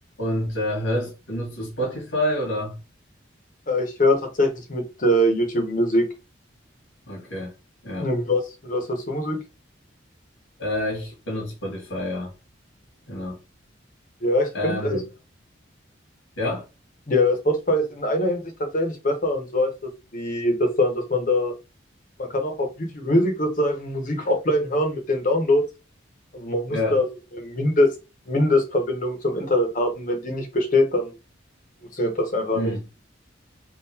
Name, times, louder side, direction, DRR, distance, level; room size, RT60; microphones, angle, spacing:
voice 1, 0.2-2.8 7.0-7.5 7.8-8.1 10.6-12.3 13.1-13.4 14.5-15.0 16.4-16.6 26.7-27.0 32.5-32.8, left 1 dB, 85° left, 1.6 m, -28 dB
voice 2, 3.7-6.1 8.0-9.4 14.2-15.0 17.1-18.4 18.7-19.7 20.1-21.5 22.2-25.6 26.3-27.1 27.3-27.9 28.3-31.1 31.9-32.7, left 1 dB, 40° left, 0.9 m, -23 dB
3.8 x 2.5 x 2.7 m
head